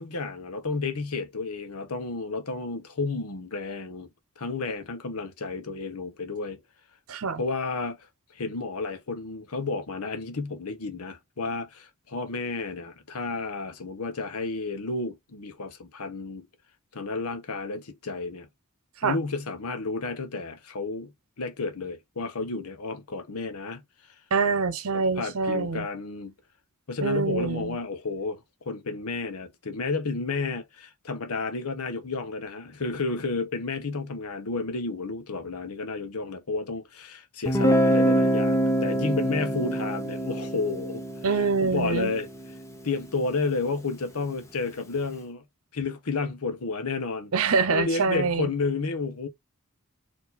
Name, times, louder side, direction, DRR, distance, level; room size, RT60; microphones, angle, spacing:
voice 1, 0.0-4.1 4.4-6.6 7.4-8.0 8.3-16.5 16.9-18.5 19.0-21.1 21.4-23.8 24.9-26.3 26.9-41.0 41.3-42.3 42.8-45.4 45.7-47.3 47.7-49.3, left 3 dB, 85° left, 0.9 m, -31 dB
voice 2, 7.1-7.4 19.0-19.1 24.3-25.9 27.0-27.8 41.2-42.1 47.3-48.5, right 4 dB, 70° right, 0.8 m, -25 dB
Guitar, 37.5-43.2, equal, 15° left, 0.8 m, -25 dB
4.5 x 2.8 x 4.0 m
head